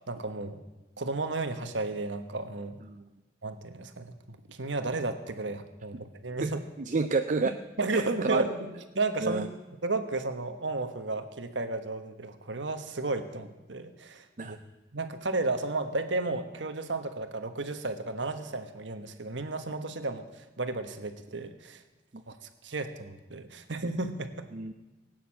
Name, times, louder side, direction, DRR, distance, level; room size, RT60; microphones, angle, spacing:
voice 1, 0.1-0.6 1.0-2.8 3.4-6.6 7.8-8.5 8.9-9.5 9.8-14.6 14.9-20.3 20.6-21.8 22.3-22.4 22.6-24.5, right 3 dB, 85° right, 8 dB, 1.4 m, -33 dB
voice 2, 6.9-7.6 7.9-8.4 9.2-9.5 14.4-14.6 24.5-24.7, right 4 dB, 45° right, 8 dB, 0.5 m, -29 dB
17.5 x 9.3 x 7.6 m, 1.1 s
head